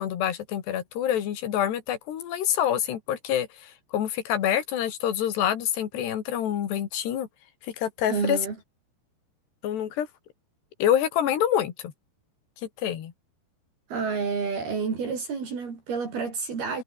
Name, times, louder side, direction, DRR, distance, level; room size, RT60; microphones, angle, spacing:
voice 1, 0.0-7.3 7.6-8.4 9.6-10.1 10.8-11.9 12.8-13.1, left 10 dB, 70° left, 4.4 m, -26 dB
voice 2, 8.1-8.5 13.9-16.8, right 5 dB, 60° right, 6.6 m, -29 dB
omnidirectional pair, 5.1 m